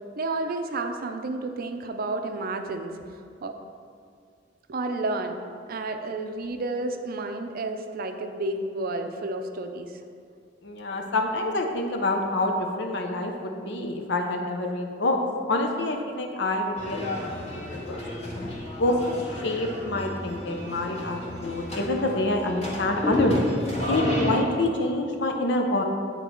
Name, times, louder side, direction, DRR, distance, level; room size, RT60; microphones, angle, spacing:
voice 1, 0.2-3.5 4.7-5.4 5.7-10.0, right 2 dB, 55° right, 6 dB, 0.5 m, -31 dB
voice 2, 10.6-15.2 15.5-18.0 18.7-19.0 19.3-23.4 23.9-25.8, left 2 dB, 65° left, 3 dB, 0.8 m, -27 dB
sound 1, 16.8-24.4, left 1 dB, 35° left, 1.5 m, -30 dB
9.2 x 4.0 x 4.4 m, 2.2 s
head